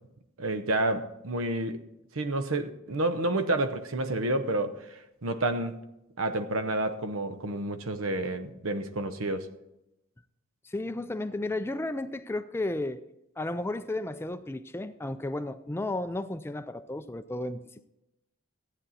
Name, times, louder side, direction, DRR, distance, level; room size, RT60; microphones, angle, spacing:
voice 1, 0.4-1.8 2.1-5.8 6.2-9.5, right 2 dB, 75° right, 0.8 m, -29 dB
voice 2, 10.6-13.0 13.4-17.6, left 2 dB, 10° left, 0.4 m, -33 dB
14.0 x 9.0 x 4.1 m
head